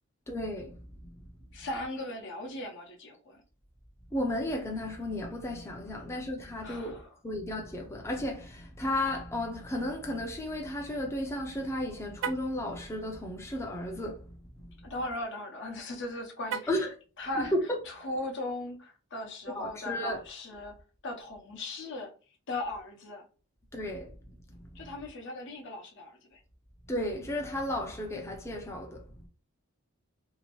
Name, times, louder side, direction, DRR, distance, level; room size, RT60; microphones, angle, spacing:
voice 1, 0.3-1.1 4.1-14.7 16.7-16.9 17.4-17.6 19.5-20.2 23.7-24.1 24.5-24.9 26.9-29.0, left 1 dB, 15° left, 0.4 m, -34 dB
voice 2, 1.5-3.4 6.6-7.1 14.8-16.9 17.2-17.5 17.9-20.7 21.0-22.1 22.5-23.3 24.7-26.4, left 1 dB, 60° left, 0.8 m, -38 dB
Car, 12.1-12.6 16.4-16.9, right 7 dB, 65° right, 0.3 m, -36 dB
3.0 x 2.8 x 2.9 m
head